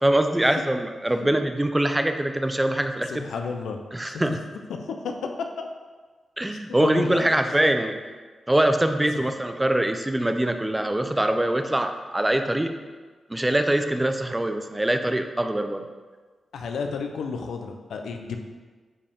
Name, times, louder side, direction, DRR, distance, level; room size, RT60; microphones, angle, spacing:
voice 1, 0.0-3.2 3.9-4.4 6.4-8.0 8.5-12.7 13.3-15.9, right 1 dB, 15° right, 7 dB, 0.7 m, -23 dB
voice 2, 3.1-3.8 4.1-4.4 5.0-5.1 5.6-5.7 6.5-7.4 9.1-9.3 16.5-18.4, left 5 dB, 85° left, 4 dB, 0.7 m, -32 dB
10.0 x 5.1 x 3.6 m, 1.4 s
cardioid pair, 60°, 0 cm